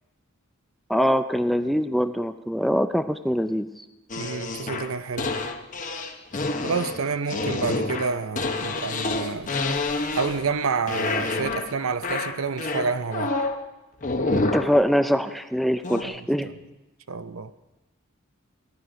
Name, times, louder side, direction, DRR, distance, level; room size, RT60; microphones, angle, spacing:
voice 1, 0.9-3.7 14.3-16.5, equal, ahead, 0.4 m, -23 dB
sound 1, 4.1-10.6 10.9-11.7 12.0-13.6 14.0-14.7 15.8-16.0, left 3 dB, 40° left, 0.9 m, -28 dB
voice 2, 4.2-5.3 6.6-9.5 10.1-13.3 16.0-16.3 17.1-17.5, right 5 dB, 85° right, 0.7 m, -29 dB
17.0 x 11.0 x 5.1 m
head